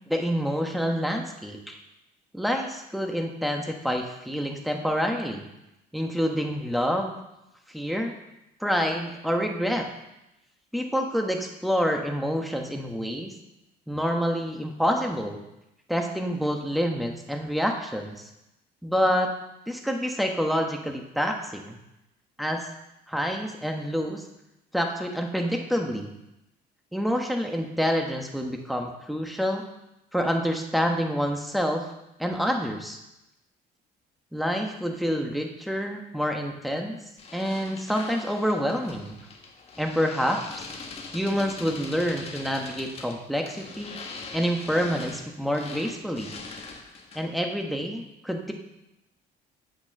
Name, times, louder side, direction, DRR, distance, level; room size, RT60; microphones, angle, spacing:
voice 1, 0.1-1.8 2.3-5.5 5.9-7.2 7.7-8.1 8.6-9.9 10.7-13.3 13.9-15.4 15.9-18.2 18.8-19.3 19.7-21.8 22.4-22.7 23.1-24.2 24.7-26.1 26.9-29.6 30.1-31.8 32.2-33.0 34.3-37.0 37.3-39.2 39.8-40.6 41.1-44.0 44.3-46.3 47.1-48.5, equal, ahead, 2 dB, 1.3 m, -27 dB
sound 1, 37.2-47.4, left 3 dB, 35° left, 1.5 m, -42 dB
8.1 x 6.4 x 6.6 m, 0.89 s
cardioid pair, 110°, 17 cm